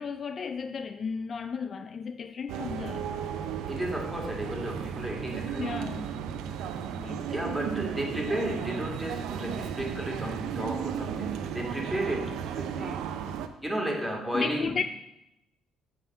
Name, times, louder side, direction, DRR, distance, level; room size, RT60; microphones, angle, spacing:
voice 1, 0.0-3.1 5.6-6.1 6.9-7.3 14.3-14.8, left 6 dB, 45° left, 0.4 m, -34 dB
sound 1, 2.5-13.5, right 8 dB, 75° right, 0.6 m, -34 dB
voice 2, 3.7-5.8 6.2-6.8 7.3-13.1 13.6-14.8, right 1 dB, 5° right, 2.1 m, -33 dB
7.9 x 3.7 x 6.7 m
supercardioid pair, 70°, 0 cm